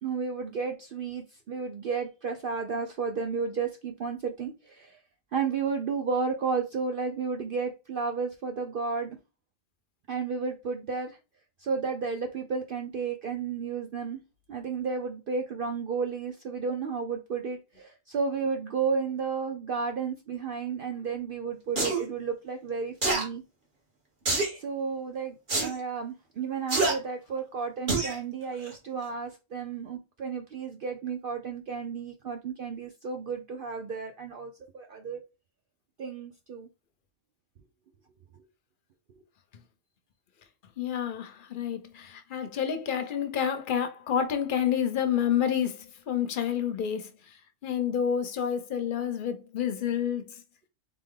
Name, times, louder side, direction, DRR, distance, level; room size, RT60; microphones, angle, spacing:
voice 1, 0.0-5.0 5.3-9.2 10.1-11.2 11.6-14.2 14.5-23.4 24.6-35.2 36.0-36.7, right 5 dB, 60° right, 0.6 m, -32 dB
sound 1, 21.8-22.0 23.0-23.2 24.3-24.6 25.5-25.7 26.7-26.9 27.9-28.2 28.6-28.7, right 3 dB, 40° right, 1.3 m, -26 dB
voice 2, 40.8-47.1 47.6-50.2, left 8 dB, 55° left, 0.6 m, -29 dB
3.6 x 3.4 x 3.7 m
omnidirectional pair, 1.3 m